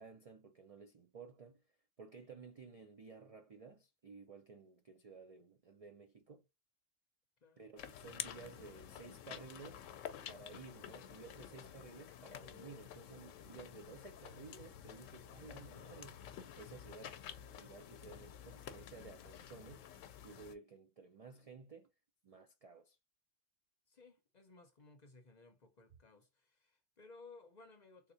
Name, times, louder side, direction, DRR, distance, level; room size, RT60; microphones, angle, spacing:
voice 1, 0.0-1.6 2.0-6.4 7.6-9.9 10.3-16.3 16.6-17.2 17.5-19.9 20.2-21.9 22.2-23.0, right 4 dB, 70° right, 0.3 m, -55 dB
sound 1, 7.8-20.5, left 9 dB, 85° left, 0.9 m, -50 dB
voice 2, 23.9-28.1, left 3 dB, 45° left, 0.6 m, -60 dB
3.5 x 2.9 x 2.7 m
omnidirectional pair, 1.3 m